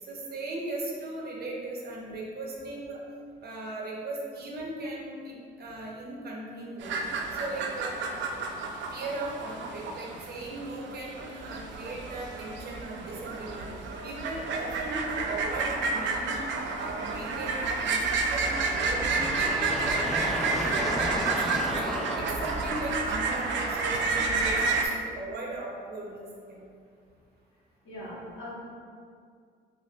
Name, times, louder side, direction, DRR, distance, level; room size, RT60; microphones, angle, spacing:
voice 1, 0.0-3.0 3.4-7.0 7.3-8.0 8.9-13.7 14.0-16.4 16.8-20.9 21.2-21.8 22.1-26.6, right 2 dB, 50° right, -3 dB, 0.8 m, -38 dB
sound 1, 6.8-24.9, right 3 dB, 70° right, 0.4 m, -30 dB
sound 2, 18.3-23.2, equal, ahead, 0.3 m, -34 dB
voice 2, 27.8-28.5, left 1 dB, 80° left, -8 dB, 1.3 m, -41 dB
5.0 x 2.2 x 2.3 m, 2.2 s
cardioid pair, 90°, 20 cm